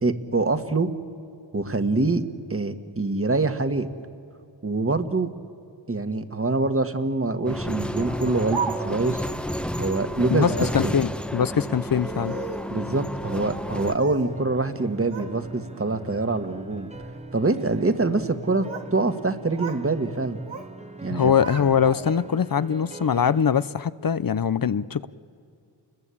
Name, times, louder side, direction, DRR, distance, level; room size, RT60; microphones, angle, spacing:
voice 1, 0.0-0.9 1.5-2.2 2.5-3.9 4.6-5.3 5.9-9.3 9.8-10.9 12.7-16.9 17.3-20.4 21.0-21.3, right 3 dB, 30° right, 9 dB, 1.8 m, -25 dB
sound 1, 7.5-14.0, equal, ahead, 1.1 m, -31 dB
Speech, 8.0-9.1 10.3-10.7 11.7-12.8 13.5-14.3 14.6-15.3 15.7-16.1 16.8-17.1 18.2-18.9 19.2-19.9 20.1-20.7 21.1-22.3, right 5 dB, 80° right, 2.2 m, -36 dB
voice 2, 10.3-12.4 21.1-25.1, left 7 dB, 50° left, 16 dB, 0.8 m, -22 dB
sound 2, 14.3-23.7, right 2 dB, 15° right, 1.3 m, -43 dB
29.5 x 21.0 x 8.6 m, 2.4 s
cardioid pair, 60°, 45 cm